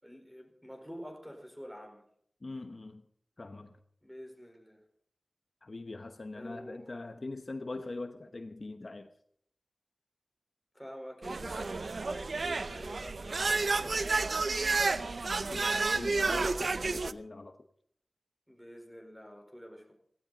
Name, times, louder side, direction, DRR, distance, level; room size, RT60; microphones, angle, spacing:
voice 1, 0.0-2.0 4.0-4.8 6.3-6.9 10.7-14.6 18.5-19.9, equal, ahead, 4.4 m, -47 dB
voice 2, 2.4-3.0 3.4-3.8 5.6-9.1 14.9-17.6, left 2 dB, 55° left, 0.9 m, -42 dB
sound 1, 11.2-17.1, right 3 dB, 75° right, 0.6 m, -31 dB
16.5 x 16.5 x 4.0 m
wide cardioid pair, 80°, 0 cm